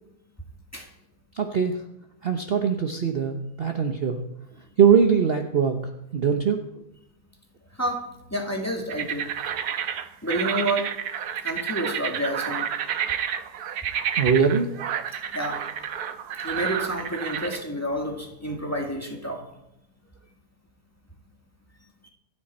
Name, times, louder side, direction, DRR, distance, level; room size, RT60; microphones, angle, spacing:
voice 1, 1.3-1.8 2.2-4.2 4.8-5.8 6.1-6.6 14.2-14.7, right 7 dB, 40° right, 4 dB, 1.1 m, -21 dB
voice 2, 7.8-9.3 10.2-10.9 11.4-12.7 15.3-15.6 16.4-19.4, right 1 dB, 10° left, 1 dB, 2.0 m, -29 dB
sound 1, 8.9-17.6, right 8 dB, 70° right, 1.3 m, -30 dB
26.0 x 8.7 x 4.3 m, 0.83 s
omnidirectional pair, 1.7 m